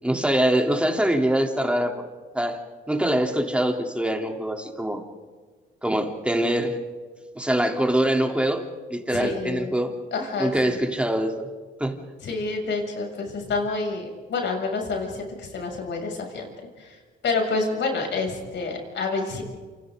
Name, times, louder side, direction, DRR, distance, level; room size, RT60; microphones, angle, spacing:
voice 1, 0.0-2.1 2.3-2.6 2.9-5.0 5.8-6.8 7.4-8.6 8.9-9.9 10.4-11.5 11.8-12.0, right 1 dB, 5° right, 2 dB, 3.5 m, -23 dB
voice 2, 9.1-9.7 10.1-10.8 12.2-16.5 16.8-19.4, left 3 dB, 65° left, 1 dB, 7.3 m, -28 dB
29.0 x 28.5 x 3.9 m, 1.5 s
cardioid pair, 90°, 20 cm